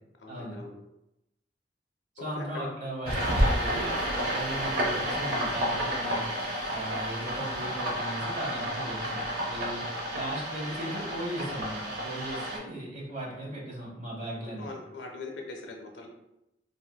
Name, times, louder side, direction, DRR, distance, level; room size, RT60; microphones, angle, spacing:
voice 1, 0.2-0.7 2.2-2.7 14.6-16.1, left 3 dB, 80° left, 2 dB, 0.6 m, -41 dB
voice 2, 2.1-3.9 4.3-6.3 6.7-9.8 10.1-14.7, right 1 dB, 45° right, -4 dB, 1.0 m, -37 dB
sound 1, 3.1-12.6, equal, 60° right, 0.7 m, -30 dB
3.4 x 2.4 x 2.2 m, 0.88 s
head